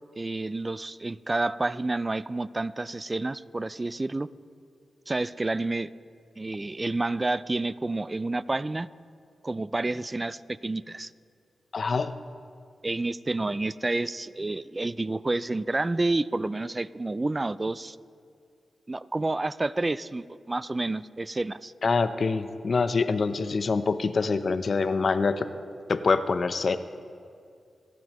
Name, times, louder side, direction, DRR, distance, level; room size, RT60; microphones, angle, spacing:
voice 1, 0.2-4.3 5.1-5.9 6.4-8.9 9.4-11.1 12.8-18.0 18.9-21.7, right 2 dB, 25° right, 16 dB, 0.3 m, -29 dB
voice 2, 11.7-12.1 21.8-25.5 25.9-26.8, left 4 dB, 55° left, 11 dB, 0.6 m, -25 dB
26.5 x 9.3 x 3.0 m, 2.3 s
cardioid pair, 65°, 0 cm